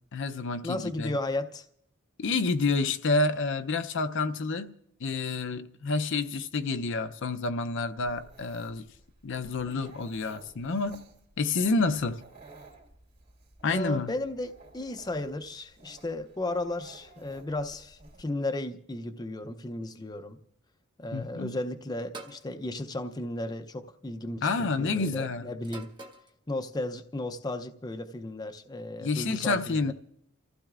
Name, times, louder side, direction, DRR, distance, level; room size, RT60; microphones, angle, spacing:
voice 1, 0.1-1.2 2.2-4.7 5.0-8.9 9.2-11.0 11.4-12.2 13.6-14.1 21.1-21.5 24.4-25.5 29.0-29.9, left 3 dB, 60° left, 0.6 m, -29 dB
voice 2, 0.6-1.7 13.7-20.4 21.0-25.9 26.5-29.9, left 1 dB, 20° left, 0.5 m, -34 dB
Dog, 8.0-18.2, right 3 dB, 50° right, 2.8 m, -54 dB
sound 1, 22.1-22.5 23.7-24.0 25.6-26.3, right 2 dB, 20° right, 0.8 m, -45 dB
29.5 x 15.0 x 2.4 m
head